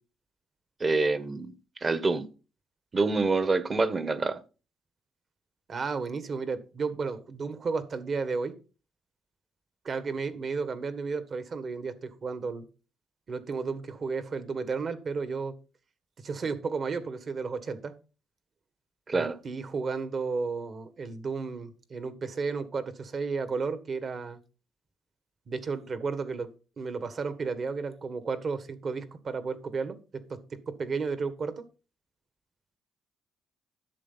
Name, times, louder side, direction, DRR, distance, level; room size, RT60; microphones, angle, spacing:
voice 1, 0.8-1.5 1.8-2.3 2.9-4.4 19.1-19.3, right 3 dB, 30° right, 1.2 m, -26 dB
voice 2, 5.7-8.5 9.8-12.7 13.3-15.5 16.2-17.9 19.1-24.4 25.5-26.5 26.8-30.0 30.3-30.4 30.7-31.6, right 4 dB, 50° right, 1.6 m, -33 dB
11.0 x 7.5 x 4.0 m
cardioid pair, 90°, 0 cm